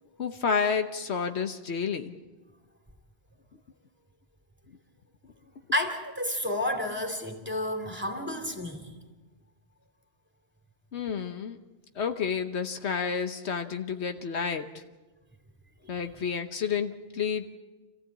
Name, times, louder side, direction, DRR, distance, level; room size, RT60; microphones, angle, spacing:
voice 1, 0.2-2.2 10.9-11.6 11.9-14.8 15.9-17.5, left 6 dB, 75° left, 7 dB, 1.3 m, -30 dB
voice 2, 5.7-8.9, left 1 dB, 10° right, 3 dB, 2.5 m, -31 dB
27.0 x 15.0 x 8.5 m, 1.2 s
omnidirectional pair, 1.1 m